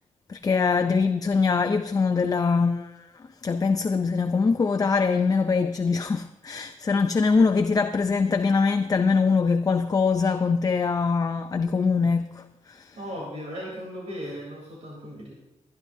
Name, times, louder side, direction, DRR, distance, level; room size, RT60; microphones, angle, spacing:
voice 1, 0.3-13.0, left 4 dB, 30° left, 0.5 m, -23 dB
voice 2, 13.0-15.3, equal, 60° right, 3.5 m, -36 dB
24.5 x 10.5 x 2.7 m
wide cardioid pair, 115°, 12 cm